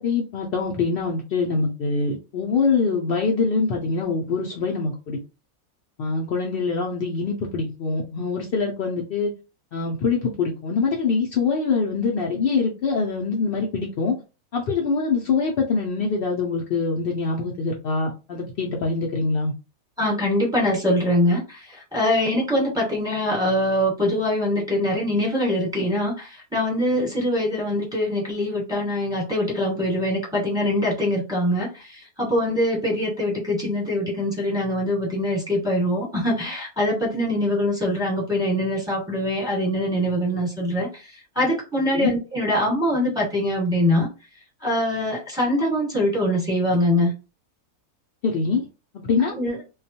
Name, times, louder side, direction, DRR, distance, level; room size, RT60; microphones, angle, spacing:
voice 1, 0.0-5.2 6.0-9.3 9.7-14.2 14.5-19.5 41.9-42.1 48.2-48.7 48.9-49.3, left 4 dB, 80° left, 0 dB, 0.5 m, -24 dB
voice 2, 20.0-44.1 44.6-47.1 49.3-49.6, left 1 dB, 5° right, -4 dB, 1.0 m, -23 dB
2.3 x 2.2 x 2.7 m, 0.30 s
omnidirectional pair, 1.6 m